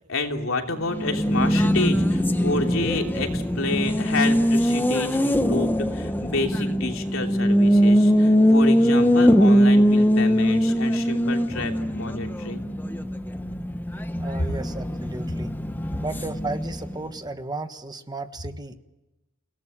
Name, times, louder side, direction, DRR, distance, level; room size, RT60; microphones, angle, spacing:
voice 1, 0.1-12.6, left 3 dB, 85° left, 3 dB, 3.1 m, -29 dB
Race car auto racing, 0.8-17.1, equal, 10° left, 1.1 m, -21 dB
voice 2, 14.2-15.5 16.0-18.7, right 2 dB, 20° right, 9 dB, 1.3 m, -34 dB
29.0 x 17.5 x 9.0 m, 1.0 s
head